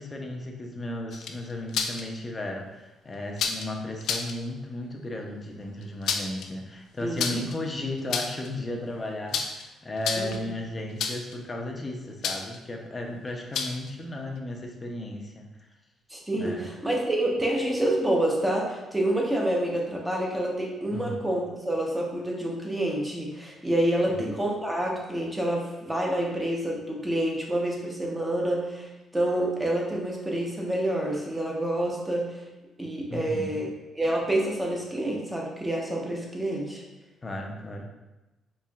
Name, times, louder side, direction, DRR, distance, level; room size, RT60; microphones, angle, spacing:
voice 1, 0.0-15.5 16.4-16.7 20.9-21.2 24.1-24.3 33.1-33.6 37.2-37.9, left 1 dB, 25° left, 1 dB, 0.6 m, -35 dB
sound 1, 1.1-2.0 3.4-3.7 4.0-4.3 5.8-6.5 7.2-7.6 8.0-8.5 9.3-9.6 10.0-10.4 11.0-11.3 12.2-12.6 13.5-13.9, left 6 dB, 75° left, 0.4 m, -30 dB
voice 2, 7.0-7.4 10.2-10.5 16.1-32.4 32.8-33.7 33.9-36.8, right 1 dB, 10° right, -2 dB, 0.9 m, -28 dB
4.3 x 3.1 x 2.3 m, 1.0 s
cardioid pair, 90°, 0 cm